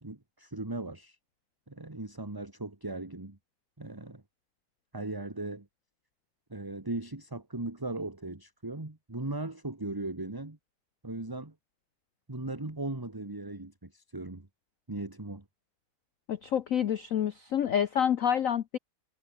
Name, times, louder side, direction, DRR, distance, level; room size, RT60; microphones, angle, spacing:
voice 1, 0.0-1.2 1.7-3.4 3.8-4.2 4.9-5.7 6.5-10.6 11.0-11.5 12.3-14.5 14.9-15.4, right 2 dB, 10° right, 1.5 m, -38 dB
voice 2, 16.3-18.8, left 9 dB, 90° left, 0.7 m, -28 dB
omnidirectional pair, 2.4 m